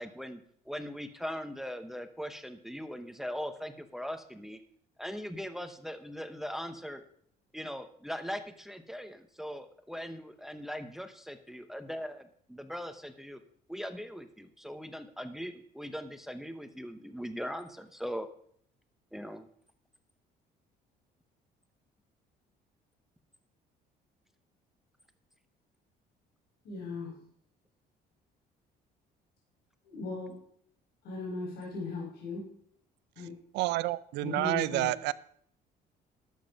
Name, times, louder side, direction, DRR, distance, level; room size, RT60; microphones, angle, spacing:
voice 1, 0.0-4.6 5.0-7.0 7.5-13.4 13.7-18.3 19.1-19.5, equal, ahead, 0.8 m, -40 dB
voice 2, 26.6-27.2 29.8-30.4 31.0-32.5 33.1-33.4 34.2-34.9, left 3 dB, 70° left, 5.1 m, -38 dB
voice 3, 33.5-35.1, right 17 dB, 85° right, 0.4 m, -29 dB
12.0 x 7.6 x 5.3 m
cardioid pair, 110°, 17 cm